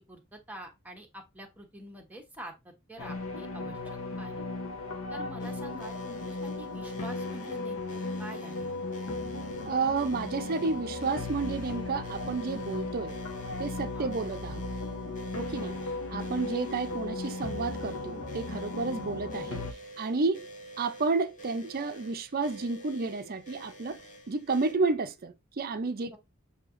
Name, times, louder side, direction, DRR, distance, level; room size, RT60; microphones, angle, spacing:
voice 1, 0.0-4.4 5.1-7.8 8.2-8.7 13.9-14.1 15.5-15.8 26.1-26.2, equal, 10° right, 1.0 m, -46 dB
sound 1, 3.0-19.7, left 2 dB, 75° left, 0.9 m, -36 dB
sound 2, 5.4-24.7, right 1 dB, 40° left, 0.8 m, -49 dB
voice 2, 9.7-13.2 13.6-14.7 15.3-15.7 16.1-19.7 20.0-20.4 20.8-24.0 24.3-26.2, right 4 dB, 45° right, 0.5 m, -31 dB
6.6 x 2.8 x 2.5 m
head